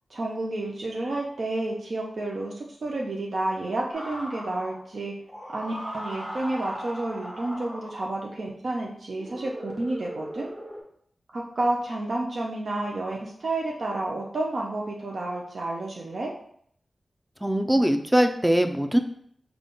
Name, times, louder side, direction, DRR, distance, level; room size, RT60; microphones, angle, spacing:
voice 1, 0.1-5.1 5.5-10.5 11.3-16.3, right 2 dB, 70° right, -2 dB, 0.5 m, -30 dB
sound 1, 3.9-4.8 5.3-8.2 9.1-10.8, equal, 30° right, 1.4 m, -38 dB
voice 2, 17.4-19.0, equal, 5° right, 6 dB, 0.4 m, -21 dB
3.6 x 2.3 x 3.7 m, 0.65 s
cardioid pair, 45°, 0 cm